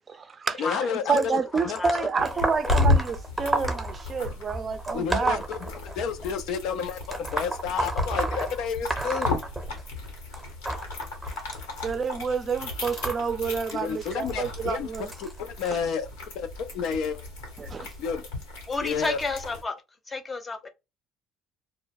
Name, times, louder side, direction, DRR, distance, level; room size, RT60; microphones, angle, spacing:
voice 1, 0.1-0.8 1.1-5.4 11.8-15.1 15.7-15.8 17.6-17.9, right 5 dB, 35° right, 0.4 m, -29 dB
voice 2, 0.6-1.4 1.6-1.8 4.9-9.4 13.7-14.9 15.2-16.1 16.3-17.2 18.0-18.3 18.8-19.2, left 6 dB, 70° left, 0.4 m, -30 dB
sound 1, 1.2-6.3 7.0-10.1 10.3-15.7 16.5-16.7 17.8-17.9 18.8-18.9 19.6-19.7, right 2 dB, 10° right, 0.7 m, -32 dB
voice 3, 1.5-2.1 18.7-19.8 20.1-20.7, left 3 dB, 25° left, 0.6 m, -31 dB
sound 2, 2.2-19.6, left 2 dB, 90° left, 1.0 m, -33 dB
2.1 x 2.1 x 3.4 m
supercardioid pair, 75°, 0 cm